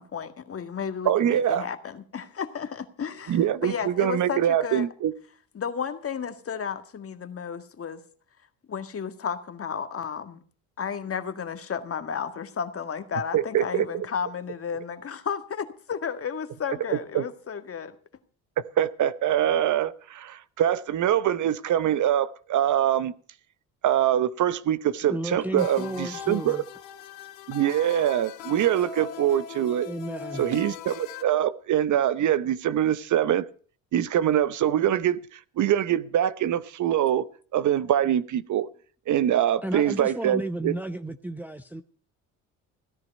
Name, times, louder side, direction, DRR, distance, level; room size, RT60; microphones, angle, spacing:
voice 1, 0.0-4.9 5.5-8.0 8.7-10.4 10.8-18.0, left 7 dB, 40° left, 1.9 m, -33 dB
voice 2, 1.0-1.6 3.3-5.1 13.3-14.1 17.1-17.2 18.8-23.1 23.8-26.6 27.5-29.9 30.4-33.5 33.9-37.2 37.5-38.7 39.1-40.7, right 11 dB, 55° right, 0.9 m, -24 dB
voice 3, 25.0-26.7 29.9-30.4 39.6-41.8, right 1 dB, 5° right, 0.8 m, -33 dB
sound 1, 25.6-31.2, left 7 dB, 85° left, 1.8 m, -40 dB
16.5 x 10.5 x 5.4 m
supercardioid pair, 75°, 36 cm